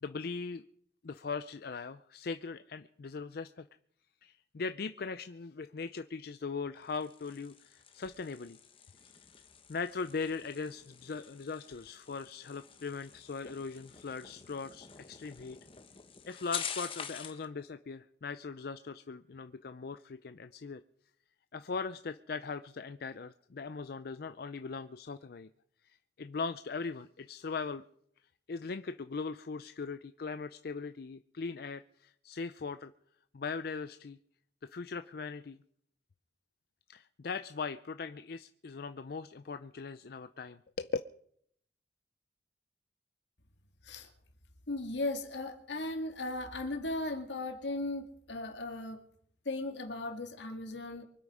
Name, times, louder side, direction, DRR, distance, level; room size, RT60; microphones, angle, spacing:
voice 1, 0.0-0.6 1.0-3.6 4.2-8.6 9.7-15.6 16.3-20.8 21.5-25.5 25.8-27.8 28.5-32.9 33.3-34.2 34.6-35.6 36.9-40.9, left 4 dB, 60° left, 10 dB, 0.5 m, -40 dB
sound 1, 6.8-17.5, left 7 dB, 30° left, 1.1 m, -47 dB
voice 2, 44.7-49.0 49.5-51.0, left 2 dB, 80° left, 5 dB, 2.2 m, -37 dB
24.5 x 8.5 x 4.9 m, 0.67 s
head